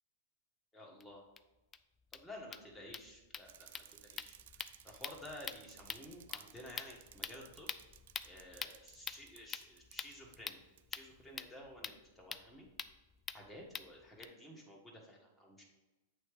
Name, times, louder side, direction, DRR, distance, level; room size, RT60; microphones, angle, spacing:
voice 1, 0.7-1.2 2.1-4.4 4.8-7.7 8.2-10.6 10.9-12.7 13.3-15.6, left 1 dB, 5° left, -3 dB, 1.7 m, -53 dB
sound 1, 1.0-1.1 1.4-1.5 1.7-1.8 2.0-14.2, left 6 dB, 20° left, 0.3 m, -47 dB
Bicycle, 3.4-10.4 10.8-10.9, right 12 dB, 70° right, 0.4 m, -59 dB
8.4 x 3.3 x 4.9 m, 1.1 s
hypercardioid pair, 115°, 0 cm